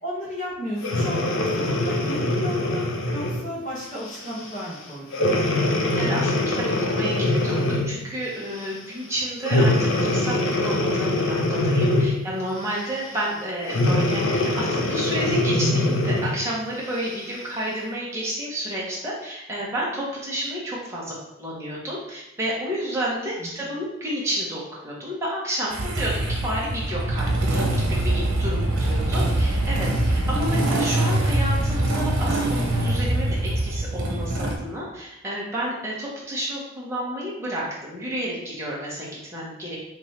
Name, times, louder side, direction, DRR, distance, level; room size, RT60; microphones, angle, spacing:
voice 1, 0.0-5.6 23.4-23.6 28.8-29.1, equal, 35° left, -8 dB, 1.4 m, -34 dB
Breathing, 0.8-3.4 4.1-4.3 5.1-8.0 9.4-12.3 13.7-16.4 17.0-17.1, left 1 dB, 65° left, 0.7 m, -23 dB
voice 2, 6.0-26.1 26.4-27.7 28.0-39.1 39.3-39.8, right 1 dB, 15° right, -6 dB, 1.1 m, -30 dB
Motorcycle / Engine starting, 25.7-34.6, right 1 dB, 85° right, 0.9 m, -23 dB
3.5 x 3.1 x 4.3 m, 0.89 s
head